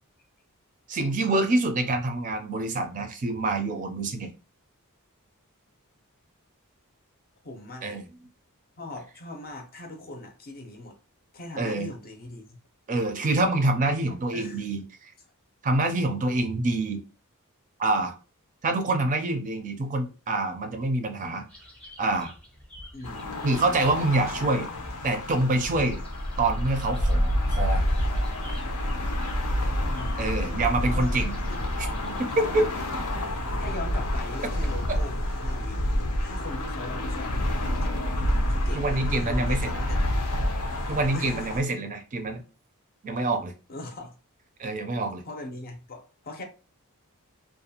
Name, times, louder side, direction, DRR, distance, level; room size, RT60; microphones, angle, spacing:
voice 1, 0.9-4.3 7.8-8.0 11.6-11.9 12.9-15.1 15.6-17.0 17.8-18.1 18.6-21.4 22.0-22.3 23.4-24.7 25.0-26.0 26.4-27.8 30.2-31.4 32.0-32.7 38.7-39.8 40.9-42.4 43.0-43.5 44.6-45.2, right 2 dB, 35° right, 0.4 m, -26 dB
voice 2, 7.4-7.9 8.8-11.0 11.3-12.6 13.8-13.9 14.3-14.6 22.9-23.3 24.4-24.5 29.8-30.2 30.5-30.6 30.8-31.2 31.5-31.6 32.8-33.0 33.6-35.8 36.2-38.0 38.5-40.3 41.1-41.8 43.7-44.1 45.3-46.4, left 2 dB, 45° left, 0.6 m, -40 dB
sound 1, 21.5-32.9, equal, 5° left, 0.7 m, -46 dB
sound 2, 23.0-41.6, left 1 dB, 85° left, 0.6 m, -28 dB
2.5 x 2.2 x 2.7 m
head